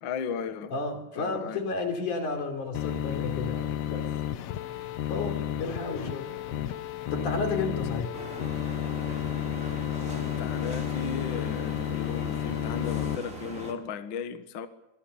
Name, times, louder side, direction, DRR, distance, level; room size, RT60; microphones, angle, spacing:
voice 1, 0.0-0.8 1.1-1.6 10.2-14.7, left 6 dB, 50° left, 1.8 m, -36 dB
voice 2, 0.7-4.1 5.1-6.6 7.1-8.2, left 3 dB, 85° left, 5.0 m, -32 dB
sound 1, 2.7-13.2, left 12 dB, 65° left, 1.8 m, -32 dB
sound 2, 8.1-13.7, right 1 dB, 25° right, 4.2 m, -40 dB
26.0 x 22.0 x 7.1 m
omnidirectional pair, 3.4 m